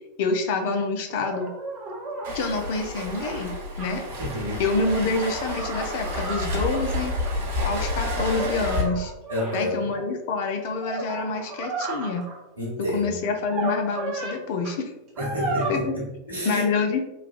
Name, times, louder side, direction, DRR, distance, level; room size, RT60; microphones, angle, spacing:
voice 1, 0.2-1.5 2.3-4.0 4.6-7.1 7.6-9.1 9.5-12.2 12.9-14.9 15.7-15.9 16.4-17.0, left 4 dB, 50° left, 4 dB, 0.4 m, -27 dB
sound 1, 1.2-3.9 4.6-7.3 7.9-10.0 10.6-12.4 13.4-14.4 14.6-14.7 15.2-15.7, right 2 dB, 30° right, 0.7 m, -33 dB
Waves surf, 2.2-8.8, left 1 dB, 55° right, 0.8 m, -30 dB
voice 2, 4.2-4.6 9.3-9.9 12.6-13.2 15.2-16.7, left 1 dB, 80° right, -6 dB, 1.1 m, -29 dB
3.2 x 2.2 x 2.3 m, 0.92 s
figure-of-eight pair, 90°, 0 cm